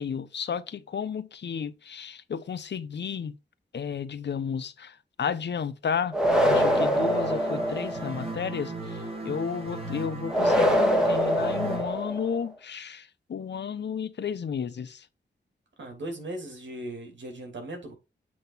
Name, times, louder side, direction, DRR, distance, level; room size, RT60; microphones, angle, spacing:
voice 1, 0.0-3.4 3.7-6.1 6.4-15.0, left 7 dB, 70° left, 0.8 m, -32 dB
sound 1, 6.1-8.2 10.3-12.4, equal, 5° right, 1.5 m, -24 dB
sound 2, 6.2-11.8, right 2 dB, 30° right, 2.4 m, -36 dB
voice 2, 15.8-17.9, right 1 dB, 75° right, 2.9 m, -38 dB
7.8 x 3.7 x 5.5 m
wide cardioid pair, 170°, 19 cm